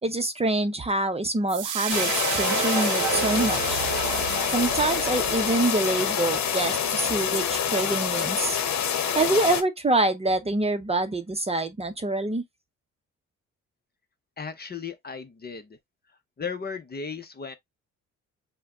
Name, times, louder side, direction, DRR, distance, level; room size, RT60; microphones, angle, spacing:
voice 1, 0.0-3.8 4.5-8.6 9.1-12.4, right 2 dB, 20° right, 0.8 m, -26 dB
sound 1, 1.5-7.9, right 10 dB, 90° right, 0.8 m, -32 dB
sound 2, 1.9-9.6, left 8 dB, 65° left, 1.0 m, -26 dB
voice 2, 14.4-15.8 16.4-17.5, left 5 dB, 30° left, 0.8 m, -35 dB
5.6 x 2.2 x 3.6 m
cardioid pair, 90°, 30 cm